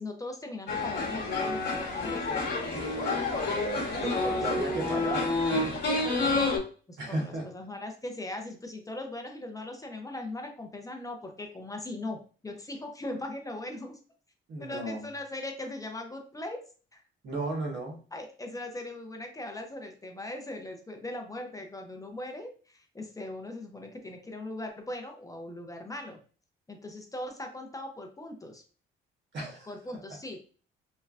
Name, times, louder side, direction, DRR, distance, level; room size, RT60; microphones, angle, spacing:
voice 1, 0.0-2.4 3.9-4.8 6.9-14.0 14.6-16.6 16.9-17.0 18.1-26.2 26.7-28.6 29.7-30.4, left 2 dB, 15° left, 3 dB, 0.5 m, -39 dB
sound 1, 0.7-6.6, left 2 dB, 55° left, 1.0 m, -29 dB
voice 2, 4.0-5.4 7.0-7.5 14.5-15.1 17.2-18.0 29.3-30.0, right 2 dB, 65° right, 1 dB, 1.1 m, -34 dB
3.2 x 2.2 x 2.4 m, 0.39 s
cardioid pair, 90°, 20 cm